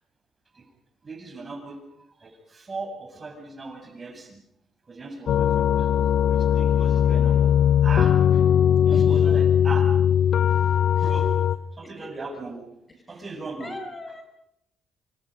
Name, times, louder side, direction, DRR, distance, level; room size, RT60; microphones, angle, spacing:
voice 1, 1.0-4.4 4.9-5.9 6.3-7.5 7.8-8.5 8.8-9.9 11.0-11.3 11.7-12.6 13.1-13.7, right 3 dB, 30° right, 3 dB, 8.0 m, -38 dB
sound 1, 5.3-11.6, left 9 dB, 65° left, 0.9 m, -19 dB
voice 2, 8.9-9.4 10.5-11.3 11.8-12.1 13.1-13.2 13.6-14.2, left 2 dB, 25° left, 5 dB, 5.3 m, -38 dB
27.5 x 27.0 x 5.4 m, 0.79 s
cardioid pair, 90°, 0 cm